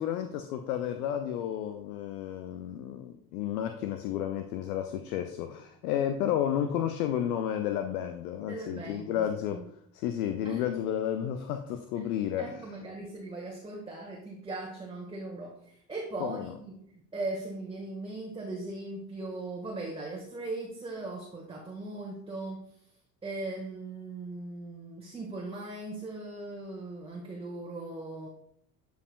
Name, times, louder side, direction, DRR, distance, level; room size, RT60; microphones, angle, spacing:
voice 1, 0.0-9.7 9.9-12.6 16.2-16.5, left 10 dB, 65° left, 7 dB, 0.7 m, -32 dB
voice 2, 8.5-9.6 10.4-10.7 11.9-12.1 12.4-22.7 23.2-28.3, right 2 dB, 10° right, -2 dB, 1.4 m, -39 dB
11.0 x 4.7 x 2.3 m, 0.69 s
figure-of-eight pair, 55°, 48 cm